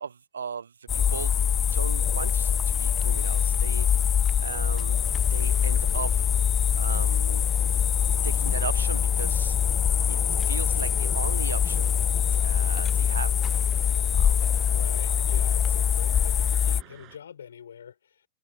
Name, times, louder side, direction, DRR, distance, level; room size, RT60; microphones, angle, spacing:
voice 1, 0.0-3.9 4.4-5.0 5.3-6.2 6.8-7.5 8.1-10.2 10.5-12.0 12.4-13.7 14.1-14.5, right 6 dB, 70° right, 1.2 m, -37 dB
sound 1, 0.9-16.8, left 8 dB, 25° left, 0.4 m, -24 dB
sound 2, 1.6-17.2, right 18 dB, 40° right, 7.8 m, -60 dB
voice 2, 14.7-18.3, left 8 dB, 65° left, 7.0 m, -44 dB
figure-of-eight pair, 90°, 0 cm